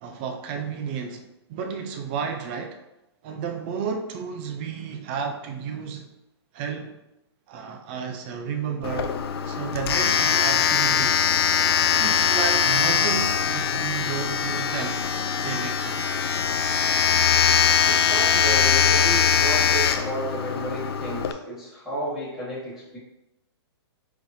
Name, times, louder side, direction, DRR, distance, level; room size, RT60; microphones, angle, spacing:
voice 1, 0.0-1.2 1.5-2.8 3.2-6.1 6.5-7.0 7.5-9.1 9.4-11.2 12.0-15.0 15.4-16.0, right 6 dB, 25° right, 4 dB, 0.4 m, -32 dB
Domestic sounds home sounds, 8.8-21.3, left 7 dB, 60° left, 0.4 m, -22 dB
voice 2, 17.8-23.0, right 1 dB, ahead, -12 dB, 1.5 m, -32 dB
4.5 x 4.0 x 2.6 m, 0.92 s
hypercardioid pair, 165°, 14 cm